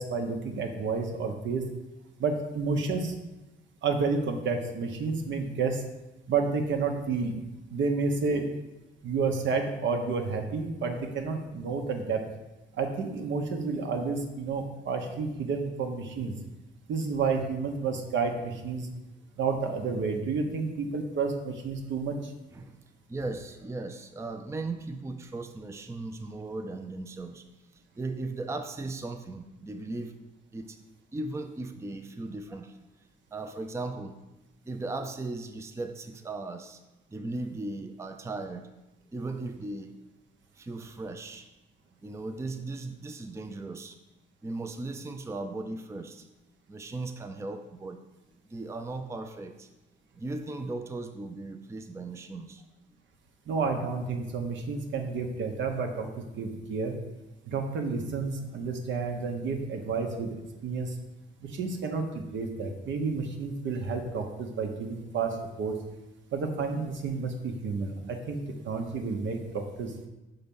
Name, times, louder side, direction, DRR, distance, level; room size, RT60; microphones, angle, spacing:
voice 1, 0.0-1.6 2.2-3.1 3.8-5.8 6.3-7.3 7.7-8.4 9.0-12.2 12.7-16.4 16.9-18.9 19.4-22.3 53.5-56.1 56.4-57.0 57.4-60.3 60.6-61.0 61.4-65.7 66.3-69.9, right 4 dB, 70° right, 4 dB, 1.0 m, -30 dB
voice 2, 23.1-27.4 27.7-30.1 30.5-30.8 31.1-32.8 33.3-34.2 34.6-36.8 37.1-38.7 39.1-39.9 40.5-41.5 42.0-44.0 44.4-46.3 46.7-48.0 48.5-49.7 50.1-52.6, right 2 dB, 15° right, 6 dB, 0.5 m, -37 dB
5.7 x 3.9 x 5.4 m, 1.0 s
cardioid pair, 90°, 20 cm